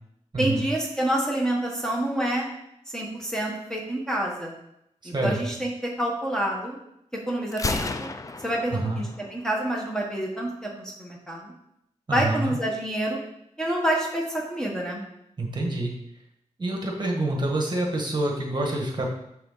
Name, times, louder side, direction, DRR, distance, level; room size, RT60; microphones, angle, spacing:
voice 1, 0.4-2.5 2.9-4.5 5.0-6.8 7.3-8.1 8.4-11.5 12.1-13.2 13.6-15.0, right 1 dB, 5° left, -2 dB, 1.4 m, -28 dB
voice 2, 5.0-5.4 8.7-9.0 12.1-12.6 15.4-15.9 16.6-19.1, right 2 dB, 35° right, 0 dB, 1.5 m, -27 dB
Gunshot gunfire, 7.5-9.5, left 3 dB, 25° left, 0.5 m, -32 dB
6.8 x 6.5 x 4.0 m, 0.79 s
wide cardioid pair, 115°, 12 cm